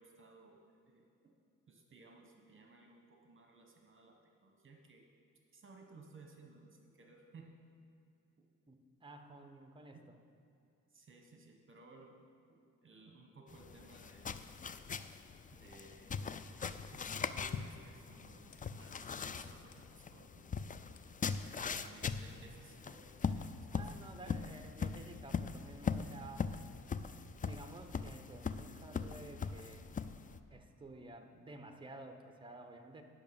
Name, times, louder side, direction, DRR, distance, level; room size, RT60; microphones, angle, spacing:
voice 1, 0.0-1.3 1.7-5.1 5.5-7.6 10.9-12.2 12.5-14.4 15.5-16.3 16.7-20.5 21.4-23.8, right 3 dB, 40° right, 2 dB, 1.3 m, -59 dB
voice 2, 8.7-10.1 21.6-21.8 23.7-26.5 27.4-29.9 30.5-33.0, right 2 dB, 15° right, 6 dB, 1.0 m, -52 dB
sound 1, 13.5-30.4, left 6 dB, 25° left, 0.4 m, -41 dB
sound 2, 15.0-15.1 15.7-15.8 16.3-16.5 17.4-17.6 18.5-18.7 19.7-19.8 21.0-21.1, left 8 dB, 65° left, 0.9 m, -62 dB
10.5 x 6.1 x 7.0 m, 2.7 s
cardioid pair, 100°, 33 cm